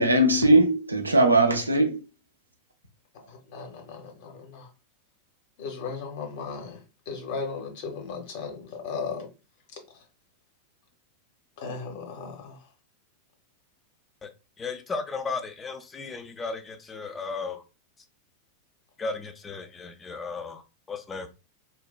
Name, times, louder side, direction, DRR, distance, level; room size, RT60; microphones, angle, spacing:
voice 1, 0.0-2.0, right 1 dB, 80° right, 0.4 m, -20 dB
voice 2, 3.5-4.7 5.6-6.7 7.1-9.3 11.6-12.6, left 5 dB, 50° left, 0.8 m, -36 dB
voice 3, 14.6-16.6 16.9-17.6 19.0-20.6 20.9-21.3, left 4 dB, 15° left, 0.4 m, -34 dB
3.1 x 2.2 x 2.3 m
figure-of-eight pair, 90°, 0 cm